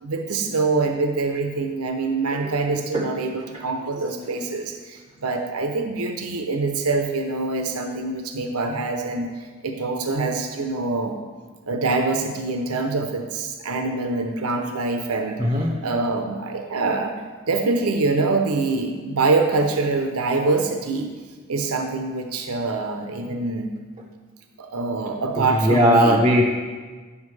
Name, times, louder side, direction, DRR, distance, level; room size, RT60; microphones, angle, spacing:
voice 1, 0.0-9.3 9.6-11.2 11.7-15.4 15.8-17.1 17.5-21.1 21.5-23.7 24.6-26.2, right 3 dB, 85° right, 4 dB, 0.7 m, -24 dB
voice 2, 15.4-15.7 25.5-26.4, equal, 20° right, 0 dB, 0.6 m, -18 dB
9.8 x 7.3 x 3.2 m, 1.4 s
head